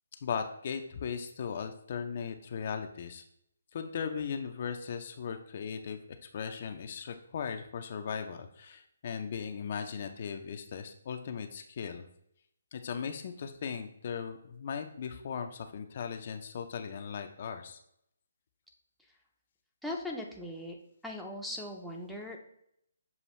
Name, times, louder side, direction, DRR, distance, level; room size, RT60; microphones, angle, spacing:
voice 1, 0.2-3.2 3.7-6.0 6.3-12.1 12.7-17.8, left 6 dB, 50° left, 6 dB, 0.4 m, -38 dB
voice 2, 19.8-20.8 21.0-22.4, left 1 dB, ahead, 0 dB, 0.5 m, -39 dB
6.8 x 2.3 x 3.1 m, 0.73 s
figure-of-eight pair, 150°, 0 cm